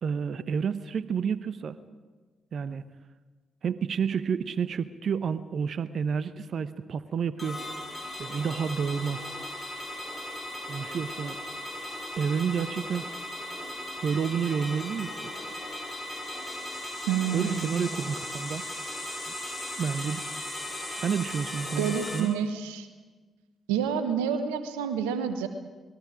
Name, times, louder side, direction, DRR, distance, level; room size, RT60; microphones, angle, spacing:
voice 1, 0.0-1.8 2.5-2.8 3.6-7.6 8.2-9.2 10.7-11.4 12.2-13.1 14.0-15.3 17.3-18.6 19.8-20.2 21.0-22.3, right 6 dB, 60° right, 14 dB, 0.9 m, -30 dB
sound 1, 7.4-22.2, left 1 dB, 20° left, 7.4 m, -37 dB
voice 2, 17.1-17.7 21.8-22.9 23.7-25.5, right 7 dB, 85° right, 9 dB, 1.2 m, -28 dB
28.0 x 21.0 x 5.0 m, 1.3 s
hypercardioid pair, 40°, 0 cm